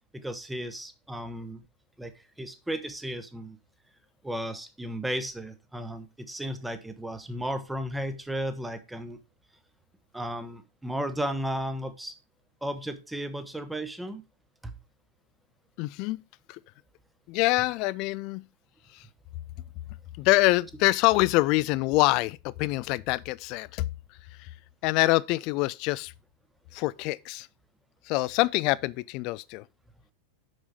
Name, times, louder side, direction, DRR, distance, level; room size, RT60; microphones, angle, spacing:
voice 1, 0.1-1.6 2.0-2.1 2.4-3.6 4.2-9.2 10.1-12.1 12.6-14.2 14.6-14.7, equal, 5° right, 1.0 m, -34 dB
voice 2, 15.8-16.2 16.5-16.6 17.3-18.4 18.9-19.0 20.2-23.9 24.4-24.5 24.8-26.1 26.7-27.5 28.1-29.6, left 20 dB, 40° left, 0.3 m, -25 dB
6.4 x 6.2 x 4.7 m
figure-of-eight pair, 90°, 0 cm